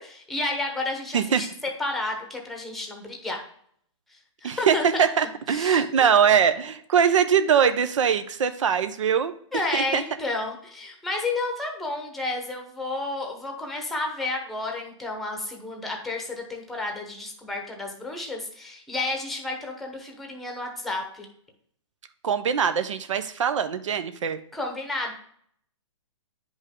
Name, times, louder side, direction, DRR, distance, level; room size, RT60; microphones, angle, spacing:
voice 1, 0.0-1.5 1.8-3.4 4.4-4.8 5.2-6.3 9.5-21.3 24.5-25.1, left 2 dB, ahead, 2 dB, 0.9 m, -31 dB
voice 2, 4.4-9.3 9.7-10.0 22.2-24.4, right 7 dB, 70° right, 11 dB, 0.7 m, -22 dB
9.6 x 5.3 x 3.6 m, 0.63 s
hypercardioid pair, 160°, 17 cm